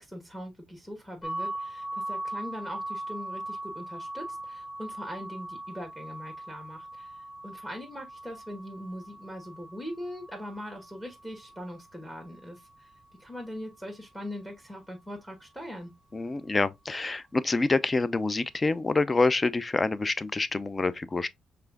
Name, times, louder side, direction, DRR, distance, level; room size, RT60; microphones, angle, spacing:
voice 1, 0.0-7.1 7.4-12.9 13.2-15.9, equal, 5° left, 1.2 m, -41 dB
sound 1, 1.2-13.0, right 1 dB, 45° left, 1.3 m, -40 dB
voice 2, 16.1-21.3, left 3 dB, 25° left, 0.4 m, -27 dB
4.8 x 3.4 x 2.3 m
cardioid pair, 90°, 0 cm